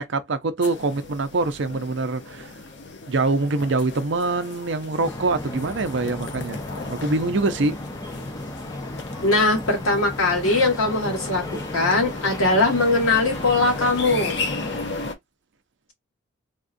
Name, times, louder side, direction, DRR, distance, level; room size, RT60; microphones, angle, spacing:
voice 1, 0.0-2.5 3.1-6.6 6.9-7.8, right 3 dB, 55° right, 0.5 m, -24 dB
sound 1, 0.6-15.1, left 3 dB, 55° left, 0.7 m, -36 dB
sound 2, 5.0-14.9, left 1 dB, 15° left, 0.5 m, -35 dB
voice 2, 9.2-11.4 11.7-14.3, left 2 dB, 80° left, 1.8 m, -20 dB
3.5 x 2.3 x 2.5 m
head